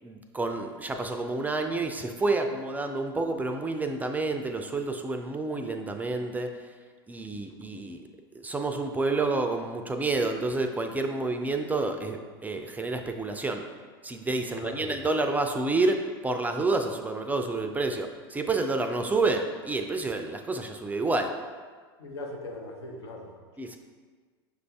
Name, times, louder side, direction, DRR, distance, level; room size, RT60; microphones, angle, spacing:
voice 1, 0.0-6.5 7.1-8.0 8.3-13.6 14.0-21.3 23.6-23.8, right 3 dB, 10° right, 5 dB, 0.3 m, -29 dB
voice 2, 14.5-15.0 22.0-23.4, left 2 dB, 85° left, 1 dB, 0.8 m, -40 dB
6.0 x 2.5 x 3.4 m, 1.5 s
hypercardioid pair, 95°, 13 cm